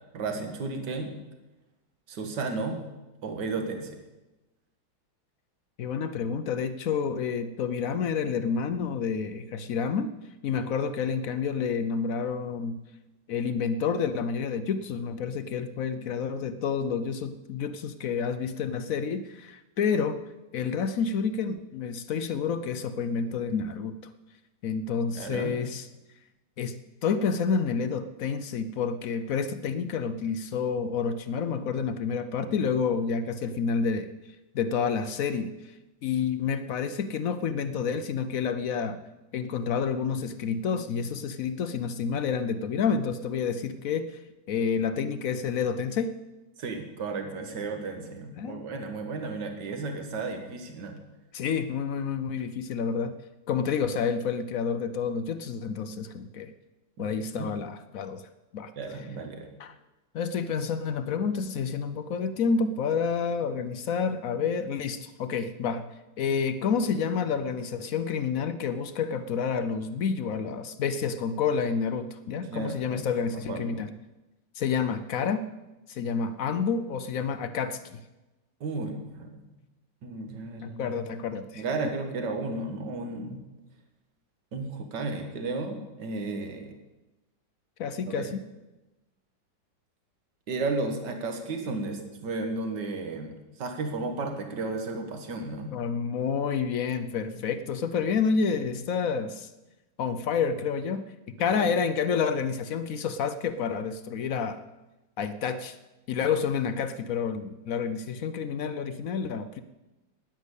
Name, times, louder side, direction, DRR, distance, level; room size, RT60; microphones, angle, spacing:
voice 1, 0.1-1.1 2.1-2.8 3.2-4.0 25.2-25.5 46.6-51.0 57.0-57.1 57.3-57.5 58.8-59.5 72.5-73.7 78.6-79.3 80.0-80.9 81.5-83.4 84.5-86.7 88.1-88.3 90.5-95.7 101.5-101.7, right 3 dB, 70° right, 5 dB, 2.2 m, -33 dB
voice 2, 5.8-10.1 10.4-12.8 13.3-20.2 20.5-24.1 24.6-25.9 26.6-26.8 27.0-34.1 34.5-35.5 36.0-39.0 39.3-44.2 44.5-46.2 48.4-48.6 51.3-53.2 53.5-56.5 57.0-58.2 58.5-58.7 59.6-59.7 60.1-65.9 66.2-73.9 74.6-75.4 75.9-78.0 80.6-81.6 87.8-88.4 95.7-99.5 100.0-104.6 105.2-105.8 106.1-109.6, left 6 dB, 65° left, 11 dB, 0.9 m, -29 dB
10.5 x 9.9 x 8.2 m, 1.0 s
omnidirectional pair, 2.0 m